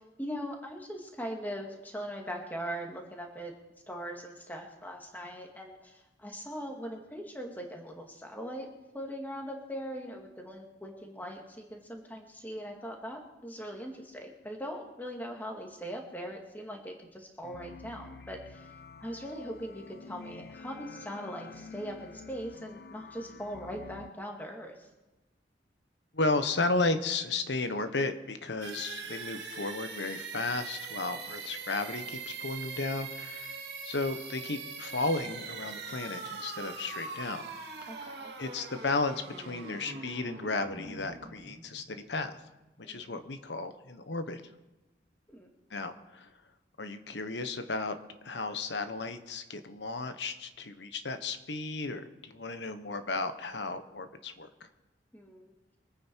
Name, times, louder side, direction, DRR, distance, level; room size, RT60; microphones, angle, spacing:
voice 1, 0.0-3.5 3.9-8.7 8.9-18.7 19.0-24.9 37.9-38.3 42.8-43.2 45.3-45.5 55.1-55.5, equal, 10° left, 2 dB, 2.1 m, -40 dB
sound 1, 17.4-24.1, left 4 dB, 55° left, 0.5 m, -48 dB
voice 2, 26.1-33.5 33.8-37.4 37.8-38.1 38.4-42.4 42.9-44.4 45.7-46.3 46.8-48.0 48.2-54.7, left 3 dB, 80° left, 9 dB, 1.2 m, -34 dB
sound 2, 28.6-42.3, right 4 dB, 70° right, 2.4 m, -42 dB
24.0 x 9.3 x 4.6 m, 1.1 s
head